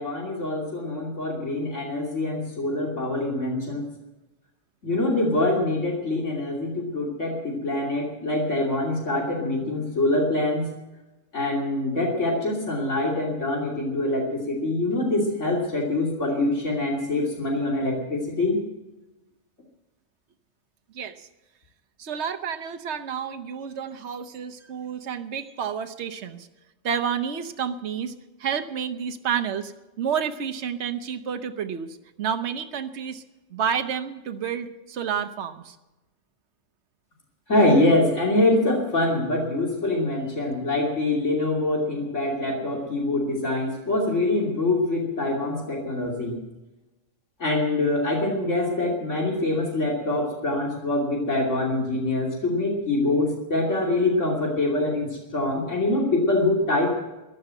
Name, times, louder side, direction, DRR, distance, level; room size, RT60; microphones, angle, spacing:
voice 1, 0.0-3.8 4.8-10.7 11.3-18.6 37.5-46.4 47.4-56.9, left 2 dB, 70° left, -1 dB, 3.2 m, -24 dB
voice 2, 20.9-21.3 22.0-26.5 26.8-28.1 28.4-29.7 30.0-33.2 33.5-35.7, right 7 dB, 65° right, 7 dB, 1.3 m, -30 dB
14.5 x 11.5 x 7.7 m, 1.0 s
omnidirectional pair, 1.3 m